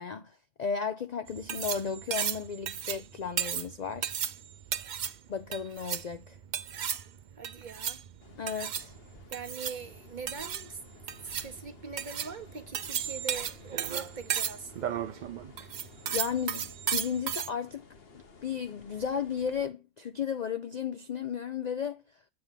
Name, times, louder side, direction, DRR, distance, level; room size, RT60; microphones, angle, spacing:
voice 1, 0.0-4.2 5.3-6.4 8.4-8.9 16.1-17.8 18.4-22.0, left 7 dB, 80° left, 0.3 m, -34 dB
sound 1, 1.3-17.5, right 9 dB, 75° right, 0.4 m, -35 dB
voice 2, 7.4-8.0 9.3-10.8 11.2-15.1, right 5 dB, 40° right, 0.9 m, -42 dB
sound 2, 8.2-19.7, left 4 dB, 50° left, 1.3 m, -54 dB
8.5 x 3.5 x 5.7 m
omnidirectional pair, 1.4 m